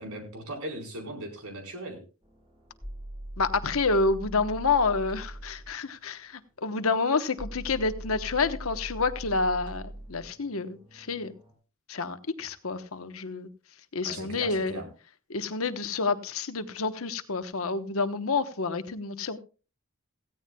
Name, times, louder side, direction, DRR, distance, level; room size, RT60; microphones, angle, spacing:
voice 1, 0.0-2.0 14.0-14.9, right 1 dB, 85° right, 4.4 m, -38 dB
sound 1, 2.2-5.7 7.4-11.5, right 1 dB, 25° right, 5.3 m, -41 dB
voice 2, 3.4-11.3 11.9-13.5 13.9-14.8 15.3-19.4, left 4 dB, 70° left, 1.1 m, -28 dB
17.0 x 15.5 x 2.3 m
head